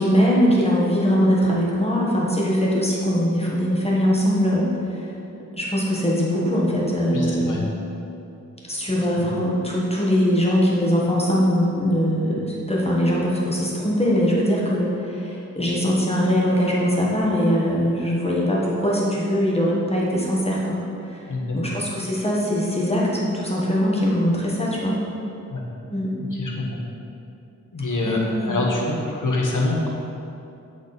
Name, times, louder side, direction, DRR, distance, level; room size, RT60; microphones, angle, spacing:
voice 1, 0.0-4.6 4.9-5.1 5.5-7.5 8.6-20.8 21.1-21.2 21.5-25.0 25.9-26.2 28.0-28.6, equal, 20° left, -5 dB, 1.2 m, -21 dB
voice 2, 7.1-7.6 21.3-21.6 25.5-25.6 26.4-26.8 27.7-28.2 28.5-29.9, left 2 dB, 75° left, -2 dB, 1.1 m, -25 dB
8.8 x 3.5 x 4.0 m, 2.8 s
wide cardioid pair, 70°, 31 cm